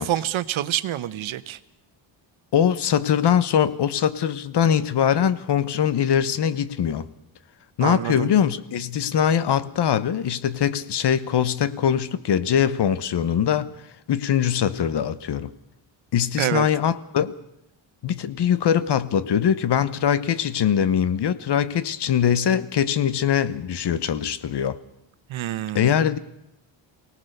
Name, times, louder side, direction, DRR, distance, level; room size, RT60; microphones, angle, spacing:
voice 1, 0.0-1.6 7.8-8.3 16.4-16.7 25.3-25.9, right 12 dB, 80° right, 1.0 m, -26 dB
voice 2, 2.5-7.1 7.8-13.7 14.1-15.5 16.1-17.3 18.0-24.8 25.7-26.2, left 9 dB, 60° left, 1.1 m, -22 dB
23.5 x 18.0 x 6.6 m
cardioid pair, 125°, 46 cm